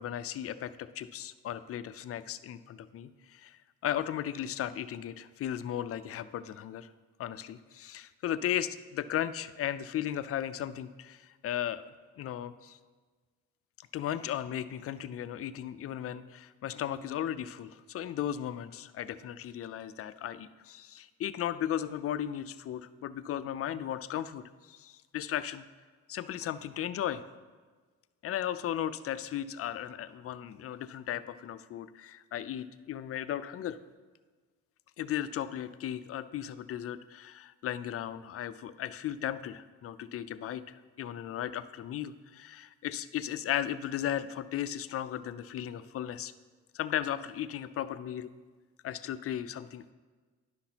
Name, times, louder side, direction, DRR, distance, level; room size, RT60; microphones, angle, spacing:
voice 1, 0.0-6.9 7.2-11.9 12.2-12.8 13.8-25.6 26.1-27.3 28.2-33.8 35.0-46.3 46.7-48.3 48.8-49.9, left 11 dB, 50° left, 13 dB, 0.4 m, -36 dB
10.5 x 5.8 x 2.9 m, 1.4 s
cardioid pair, 90°, 30 cm